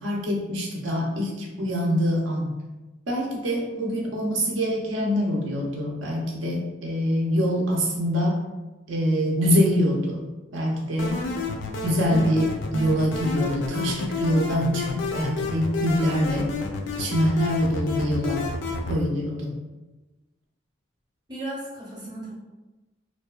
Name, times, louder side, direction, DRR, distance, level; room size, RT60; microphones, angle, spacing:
voice 1, 0.0-2.6 3.1-8.4 8.9-10.3 10.5-11.2 11.8-16.5 17.0-18.5 18.9-19.6, equal, 75° right, -1 dB, 0.6 m, -24 dB
sound 1, 11.0-19.0, left 4 dB, 65° left, 0.3 m, -30 dB
voice 2, 21.3-22.3, right 1 dB, 20° right, -6 dB, 0.7 m, -35 dB
2.6 x 2.2 x 2.3 m, 1.1 s
head